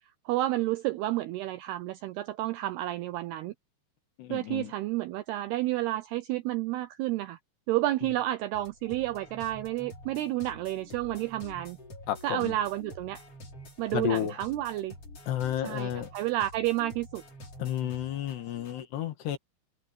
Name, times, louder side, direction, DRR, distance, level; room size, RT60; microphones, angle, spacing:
voice 1, 0.3-3.5 4.3-7.4 7.7-11.8 12.2-13.2 13.8-14.9 15.6-17.2, right 15 dB, 85° right, 2.3 m, -30 dB
voice 2, 4.2-4.7 12.1-12.5 13.9-14.4 15.3-16.1 17.6-19.4, left 11 dB, 70° left, 3.5 m, -31 dB
sound 1, 8.5-18.8, left 1 dB, 30° left, 4.9 m, -48 dB
omnidirectional pair, 5.4 m